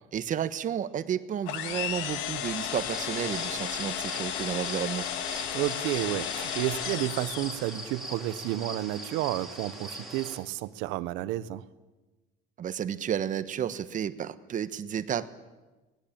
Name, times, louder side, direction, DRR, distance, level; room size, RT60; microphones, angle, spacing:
voice 1, 0.1-5.0 12.6-15.3, right 9 dB, 45° right, 1.3 m, -32 dB
sound 1, 1.5-8.0, left 10 dB, 80° left, 1.7 m, -34 dB
sound 2, 2.7-10.4, right 1 dB, ahead, 4.5 m, -41 dB
voice 2, 5.3-11.6, right 15 dB, 80° right, 1.1 m, -31 dB
24.0 x 19.0 x 8.9 m
cardioid pair, 110°, 19 cm